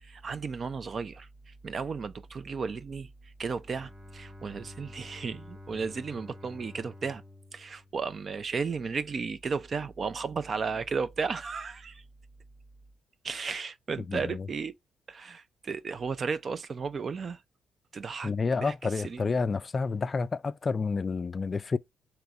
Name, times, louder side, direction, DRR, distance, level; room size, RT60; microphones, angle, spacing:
voice 1, 0.0-7.2 7.5-12.0 13.2-14.7 15.1-17.4 17.9-19.3, right 5 dB, 45° right, 0.4 m, -34 dB
Bowed string instrument, 3.6-8.5, left 1 dB, 25° right, 1.1 m, -49 dB
voice 2, 14.1-14.5 18.2-21.8, left 4 dB, 35° left, 0.3 m, -29 dB
3.4 x 3.0 x 3.7 m
cardioid pair, 90°, 0 cm